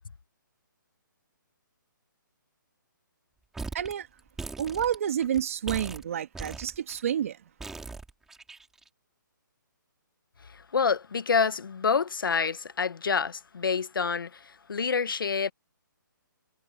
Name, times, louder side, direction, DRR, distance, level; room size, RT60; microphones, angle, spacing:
sound 1, 3.5-3.9 4.2-5.4 5.7-7.0 7.6-8.9, right 3 dB, 5° right, 3.4 m, -39 dB
voice 1, 3.7-4.1 4.6-7.4, right 9 dB, 40° right, 2.0 m, -29 dB
voice 2, 10.7-15.5, left 5 dB, 85° left, 0.9 m, -27 dB
hypercardioid pair, 170°, 11 cm